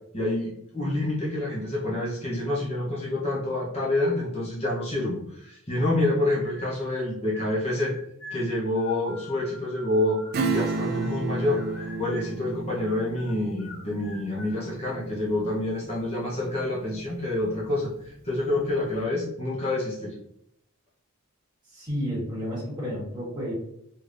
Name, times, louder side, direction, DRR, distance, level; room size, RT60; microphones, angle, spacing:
voice 1, 0.1-7.9 8.3-10.2 10.5-11.6 12.0-20.1, left 1 dB, 30° left, -6 dB, 0.8 m, -27 dB
sound 1, 6.4-7.0 7.3-11.2 11.4-12.4 12.8-14.6, left 1 dB, 70° left, 0.9 m, -46 dB
Acoustic guitar / Strum, 10.3-16.5 16.9-17.0, right 4 dB, 45° right, 0.3 m, -33 dB
voice 2, 21.7-23.5, equal, 20° right, -6 dB, 1.4 m, -31 dB
3.3 x 2.9 x 2.5 m, 0.76 s
head